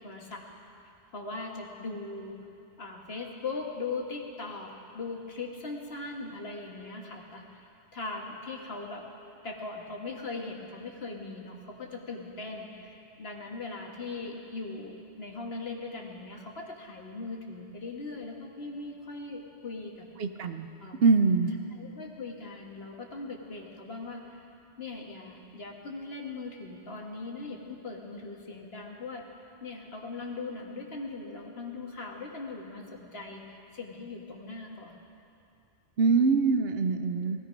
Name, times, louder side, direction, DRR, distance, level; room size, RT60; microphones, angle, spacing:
voice 1, 0.0-0.4 1.1-2.4 2.8-7.4 7.9-9.0 9.4-20.1 20.8-21.1 21.7-24.2 24.8-29.2 29.6-35.0, left 3 dB, 65° left, 0 dB, 1.8 m, -39 dB
voice 2, 20.2-20.7 21.0-21.5 36.0-37.4, right 4 dB, 65° right, 8 dB, 0.9 m, -23 dB
19.5 x 14.0 x 5.3 m, 2.6 s
omnidirectional pair, 1.1 m